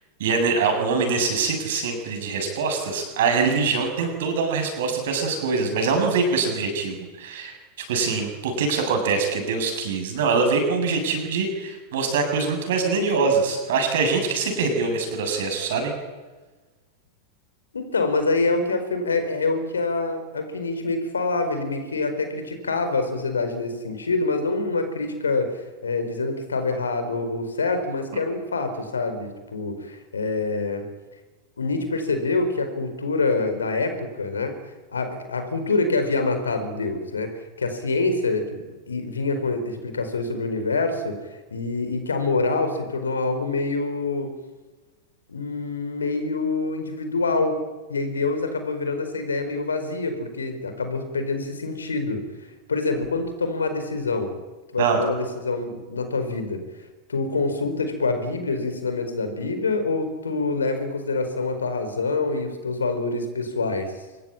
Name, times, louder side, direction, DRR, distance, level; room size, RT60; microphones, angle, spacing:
voice 1, 0.2-7.6 7.9-15.9 54.8-55.0, right 4 dB, 55° right, 4 dB, 7.5 m, -23 dB
voice 2, 17.7-30.8 31.6-34.6 34.9-38.6 38.9-44.3 45.3-47.6 47.9-52.2 52.7-54.3 54.7-56.6 57.1-63.9, left 3 dB, 75° left, 8 dB, 4.7 m, -26 dB
25.5 x 21.5 x 8.8 m, 1.2 s
figure-of-eight pair, 90°, 0 cm